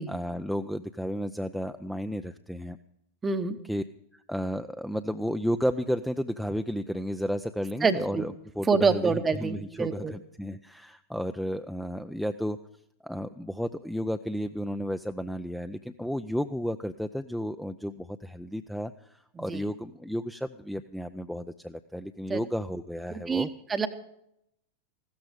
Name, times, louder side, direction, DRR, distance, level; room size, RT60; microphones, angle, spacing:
voice 1, 0.0-2.8 3.6-3.8 4.1-12.6 13.0-23.5, equal, ahead, 9 dB, 0.5 m, -32 dB
voice 2, 3.2-3.5 7.8-8.2 8.7-10.1 19.5-19.6 22.3-22.4 23.3-23.9, right 5 dB, 15° right, 9 dB, 0.9 m, -26 dB
15.5 x 13.0 x 5.1 m, 0.76 s
figure-of-eight pair, 90°, 0 cm